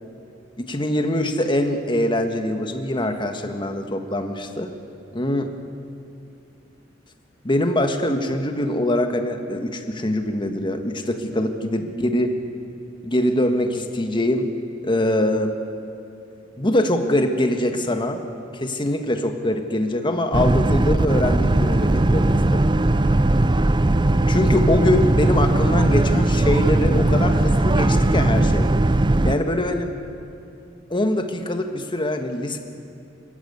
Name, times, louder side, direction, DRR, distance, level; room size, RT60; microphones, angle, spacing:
voice 1, 0.7-4.7 5.1-5.5 7.4-12.3 13.0-14.5 14.8-15.6 16.6-18.2 18.5-22.7 24.3-28.7 29.2-29.9 30.9-32.6, left 1 dB, 25° left, 6 dB, 1.5 m, -23 dB
Boat Water vehicle, 20.3-29.3, right 2 dB, 25° right, 0.6 m, -18 dB
23.5 x 14.0 x 9.5 m, 2.6 s
head